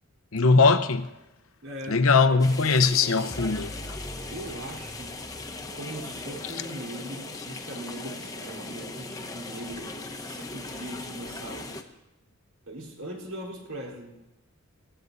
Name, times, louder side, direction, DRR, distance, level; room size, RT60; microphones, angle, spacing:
voice 1, 0.3-1.1 1.9-3.7, left 4 dB, 75° left, 0.9 m, -20 dB
voice 2, 1.6-2.5 4.3-5.2 5.6-11.7 12.6-14.2, right 1 dB, 75° right, 4.2 m, -40 dB
sound 1, 2.4-11.8, left 2 dB, 15° left, 1.0 m, -39 dB
sound 2, 3.3-6.4, equal, 10° right, 0.7 m, -43 dB
18.5 x 16.5 x 4.0 m
head